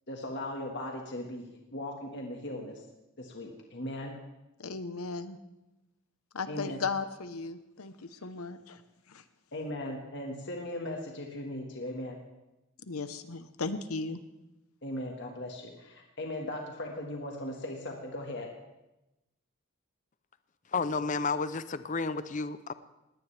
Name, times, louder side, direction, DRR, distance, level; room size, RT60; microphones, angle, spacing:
voice 1, 0.1-2.8 3.2-4.2 6.5-6.8 9.5-12.2 14.8-18.5, left 1 dB, 50° left, 1 dB, 1.7 m, -38 dB
voice 2, 4.6-5.4 6.3-8.8 9.1-9.2 12.9-14.2, left 4 dB, 75° left, 11 dB, 1.0 m, -36 dB
voice 3, 20.7-22.7, left 4 dB, 35° left, 13 dB, 0.5 m, -31 dB
20.0 x 17.5 x 3.4 m, 0.97 s
head